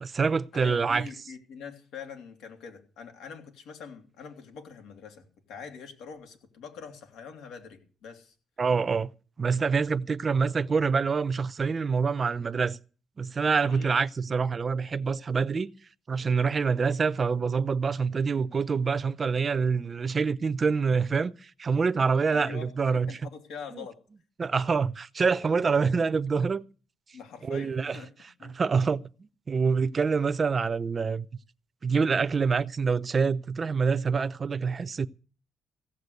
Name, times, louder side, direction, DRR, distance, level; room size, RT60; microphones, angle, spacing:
voice 1, 0.0-1.1 8.6-9.1 9.4-12.8 13.2-15.7 16.1-23.1 23.7-23.9 24.4-26.6 27.4-28.0 28.4-31.3 31.8-35.1, right 5 dB, 35° right, 0.7 m, -26 dB
voice 2, 0.5-8.3 13.6-13.9 22.3-24.0 27.1-28.1 28.4-28.5, left 6 dB, 90° left, 3.0 m, -44 dB
16.0 x 7.4 x 8.3 m
cardioid pair, 90°, 0 cm